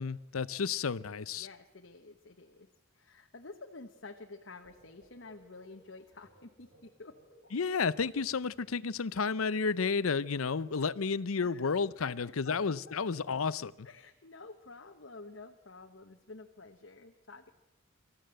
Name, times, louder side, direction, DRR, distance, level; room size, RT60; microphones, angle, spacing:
voice 1, 0.0-1.5 7.5-13.9, left 5 dB, 85° left, 0.7 m, -32 dB
voice 2, 1.3-2.7 2.9-7.1 11.4-12.1 12.4-13.0 13.8-17.5, left 3 dB, 60° left, 1.2 m, -50 dB
sound 1, 4.6-9.1, equal, 45° right, 4.9 m, -63 dB
25.0 x 14.5 x 7.7 m
head